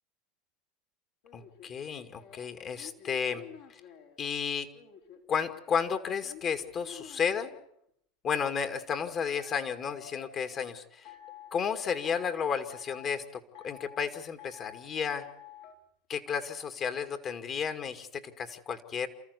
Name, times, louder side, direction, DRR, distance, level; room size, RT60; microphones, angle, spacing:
sound 1, 1.2-4.2 4.7-7.7 8.9-10.6 11.1-11.5 11.9-12.4 12.7-13.2 13.5-14.1 14.4-14.9 15.2-15.7, left 9 dB, 70° left, 3.9 m, -50 dB
voice 1, 1.3-3.4 3.7-3.8 4.2-4.7 5.3-7.5 8.2-11.1 11.5-15.3 16.1-19.1, left 7 dB, 40° left, 8 dB, 2.2 m, -33 dB
28.5 x 14.0 x 8.3 m, 0.73 s
hypercardioid pair, 90°, 0 cm